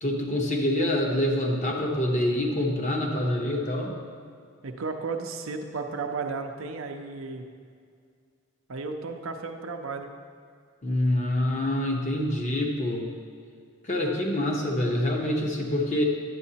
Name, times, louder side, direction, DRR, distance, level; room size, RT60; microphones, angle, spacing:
voice 1, 0.0-4.0 10.8-13.1 13.8-16.0, left 1 dB, 35° left, 0 dB, 0.9 m, -26 dB
voice 2, 4.6-7.4 8.7-10.1, right 4 dB, 65° right, 5 dB, 0.6 m, -34 dB
9.5 x 8.2 x 2.8 m, 2.2 s
head